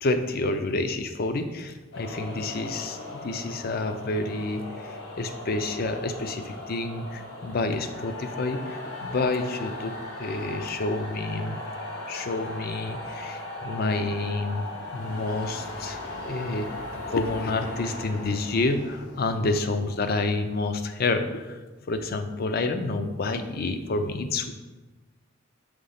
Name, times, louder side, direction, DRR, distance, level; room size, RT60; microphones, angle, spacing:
voice 1, 0.0-9.9 10.2-11.6 12.1-14.6 14.9-16.7 17.0-21.6 21.9-24.5, left 2 dB, 50° left, 8 dB, 0.5 m, -29 dB
sound 1, 1.9-20.5, left 2 dB, 80° left, 1.7 m, -38 dB
5.1 x 3.8 x 5.6 m, 1.2 s
head